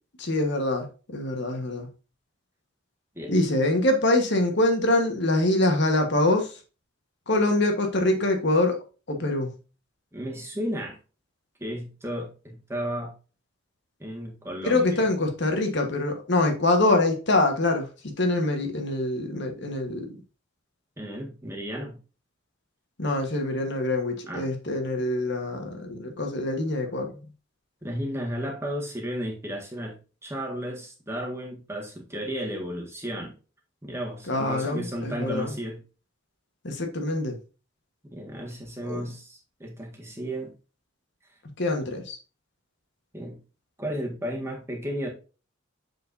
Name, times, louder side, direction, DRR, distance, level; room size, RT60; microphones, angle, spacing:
voice 1, 0.2-1.9 3.3-6.6 7.3-8.8 9.1-9.5 14.6-20.1 23.0-27.2 34.3-35.5 36.6-37.4 38.8-39.0 41.6-42.2, left 2 dB, 55° left, 1.4 m, -24 dB
voice 2, 10.1-11.0 11.6-13.2 14.0-15.0 21.0-22.0 24.3-24.5 27.8-33.3 33.8-35.8 38.1-40.5 43.1-43.4 43.8-45.1, equal, 15° right, 1.7 m, -33 dB
7.1 x 6.2 x 2.7 m
head